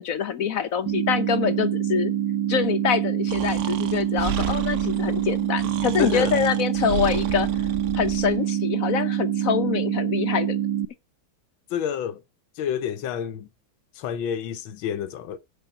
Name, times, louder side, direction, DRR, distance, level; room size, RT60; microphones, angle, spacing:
voice 1, 0.0-2.1 2.5-7.5 7.9-10.6, left 8 dB, 60° left, 1.0 m, -25 dB
sound 1, 0.9-10.9, right 11 dB, 75° right, 1.8 m, -25 dB
Breathing, 3.3-8.4, right 6 dB, 60° right, 0.8 m, -33 dB
voice 2, 6.0-6.4 11.7-12.2 12.6-13.5 14.0-15.4, left 9 dB, 85° left, 1.6 m, -28 dB
10.0 x 5.5 x 7.6 m
omnidirectional pair, 2.1 m